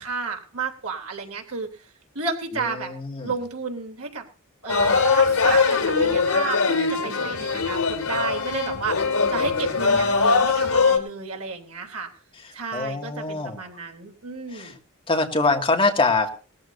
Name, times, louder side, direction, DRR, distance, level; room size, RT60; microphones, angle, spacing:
voice 1, 0.0-1.9 2.1-2.9 3.2-4.2 4.6-9.0 9.3-12.1 12.5-14.8, right 4 dB, 85° right, 2 dB, 3.3 m, -32 dB
voice 2, 2.6-3.3 9.9-10.1 12.7-13.6 14.5-14.7 15.1-16.3, left 3 dB, 25° left, 2 dB, 2.3 m, -24 dB
sound 1, 4.7-11.0, left 4 dB, 80° left, 2.7 m, -21 dB
19.5 x 14.0 x 2.7 m, 0.36 s
head